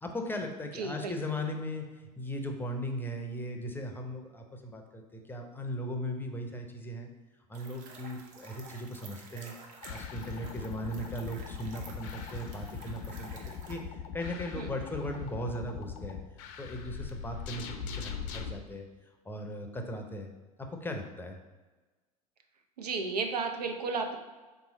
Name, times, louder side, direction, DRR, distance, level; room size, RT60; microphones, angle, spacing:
voice 1, 0.0-7.1 7.5-13.8 14.1-16.2 16.6-18.9 19.2-20.3 20.6-21.4, equal, 10° left, 4 dB, 0.5 m, -38 dB
voice 2, 0.7-1.1 14.6-14.7 22.8-24.2, right 4 dB, 85° right, 4 dB, 0.5 m, -33 dB
sound 1, 7.5-13.8, right 3 dB, 40° right, 0.7 m, -51 dB
sound 2, 9.8-18.6, left 7 dB, 55° left, 0.5 m, -41 dB
3.5 x 3.0 x 4.0 m, 1.2 s
hypercardioid pair, 80°, 20 cm